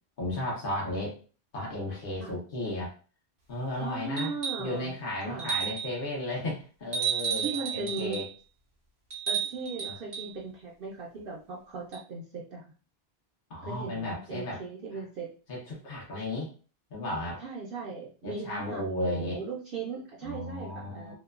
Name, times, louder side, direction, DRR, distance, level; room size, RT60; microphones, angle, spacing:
voice 1, 0.2-1.1 1.5-2.9 3.5-4.3 4.6-8.2 9.8-9.9 13.5-14.6 15.5-16.5 16.9-17.4 18.2-19.4 20.2-21.1, left 1 dB, 60° left, -4 dB, 1.0 m, -34 dB
voice 2, 3.8-5.5 7.4-8.2 9.3-12.7 13.6-15.3 17.4-21.1, right 4 dB, 65° right, -3 dB, 0.7 m, -38 dB
sound 1, 4.2-4.7 5.4-6.0 6.9-8.3 9.1-10.3 11.9-12.0, right 7 dB, 80° right, 1.1 m, -32 dB
2.9 x 2.2 x 2.3 m, 0.38 s
omnidirectional pair, 1.1 m